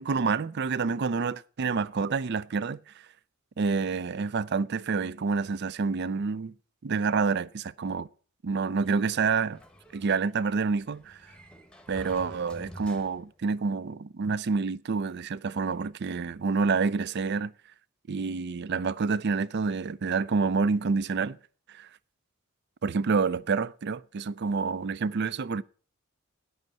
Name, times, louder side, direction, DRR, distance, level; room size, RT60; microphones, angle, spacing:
voice 1, 0.0-2.8 3.6-6.5 6.8-8.1 8.4-9.6 9.9-11.2 11.9-17.5 18.1-21.4 21.7-21.9 22.8-25.6, right 4 dB, 50° right, 0.4 m, -28 dB
Sliding door, 8.8-13.5, equal, 5° left, 0.9 m, -49 dB
9.4 x 8.0 x 7.5 m
head